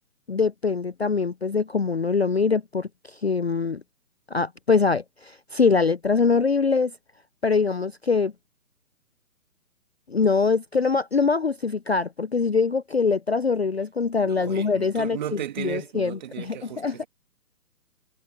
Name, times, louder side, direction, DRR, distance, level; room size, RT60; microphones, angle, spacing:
voice 1, 0.3-2.9 3.2-3.8 4.3-6.9 7.4-8.3 10.1-17.0, left 4 dB, 45° left, 0.5 m, -23 dB
voice 2, 14.2-17.1, right 11 dB, 30° right, 2.0 m, -35 dB
hypercardioid pair, 160°, 48 cm